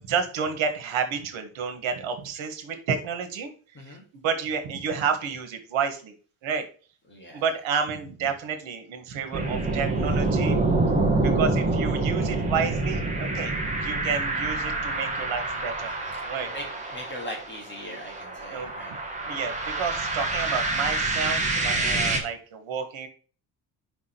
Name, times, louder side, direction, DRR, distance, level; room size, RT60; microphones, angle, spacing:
voice 1, 0.0-3.5 3.9-6.1 6.4-6.7 7.3-10.6 11.2-15.9 16.2-16.5 18.5-18.7 19.2-23.1, right 6 dB, 70° right, 8 dB, 1.6 m, -30 dB
voice 2, 7.1-7.4 16.5-16.6 16.9-18.9 19.3-19.4, equal, 25° left, 0 dB, 1.8 m, -39 dB
sound 1, 9.3-22.2, right 2 dB, 15° right, 1.2 m, -27 dB
5.3 x 4.9 x 5.7 m, 0.39 s
cardioid pair, 180°, 48 cm